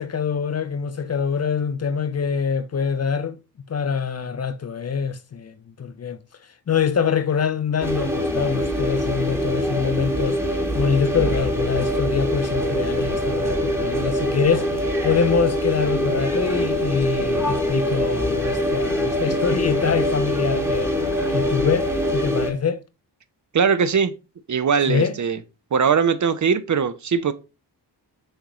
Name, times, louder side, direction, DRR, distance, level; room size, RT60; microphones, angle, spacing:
voice 1, 0.0-3.4 3.7-6.2 6.7-10.4 10.7-22.8 24.9-25.2, left 6 dB, 40° left, 0.5 m, -24 dB
sound 1, 7.8-22.5, equal, 5° right, 1.1 m, -23 dB
voice 2, 23.5-24.1 24.5-25.4 25.7-27.3, right 6 dB, 45° right, 0.5 m, -20 dB
6.4 x 2.4 x 3.0 m
cardioid pair, 45°, 43 cm